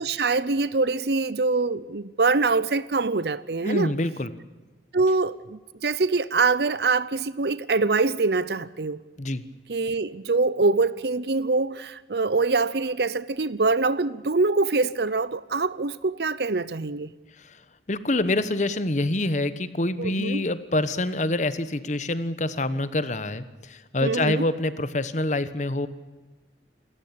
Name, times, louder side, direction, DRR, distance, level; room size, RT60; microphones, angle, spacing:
voice 1, 0.0-3.9 4.9-9.0 9.7-17.1 20.0-20.4 24.0-24.4, right 3 dB, 65° right, 0.8 m, -24 dB
voice 2, 3.6-4.3 9.2-9.4 17.4-17.6 17.9-25.9, left 2 dB, 45° left, 1.2 m, -26 dB
27.5 x 14.0 x 8.7 m
head